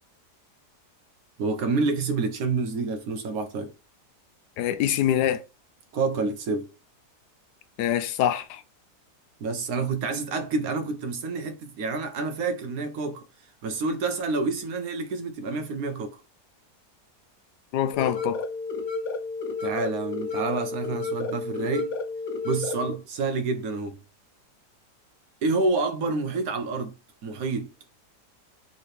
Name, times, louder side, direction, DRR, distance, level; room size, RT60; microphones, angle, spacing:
voice 1, 1.4-3.7 5.9-6.7 9.4-13.2 13.6-16.2 19.6-21.9 22.4-24.0 25.4-26.9 27.2-27.7, right 3 dB, 65° right, 1.0 m, -28 dB
voice 2, 4.6-5.4 7.8-8.6 17.7-18.4, left 11 dB, 80° left, 1.1 m, -24 dB
sound 1, 17.9-22.9, left 3 dB, 55° left, 1.0 m, -31 dB
3.8 x 3.2 x 4.1 m
omnidirectional pair, 1.8 m